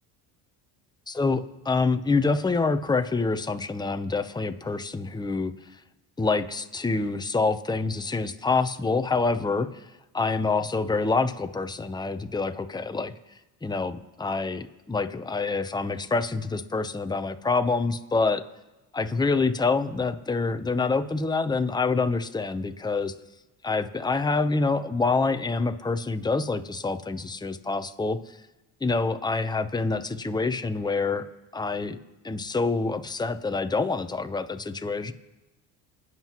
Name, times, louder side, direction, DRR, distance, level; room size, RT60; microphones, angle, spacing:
voice 1, 1.1-5.5 6.2-9.9 10.1-13.1 13.6-18.4 18.9-23.1 23.6-28.4 28.8-31.3 31.5-32.0 32.2-35.1, left 3 dB, 10° left, 8 dB, 0.8 m, -26 dB
27.5 x 9.4 x 3.0 m, 1.1 s
supercardioid pair, 80°, 46 cm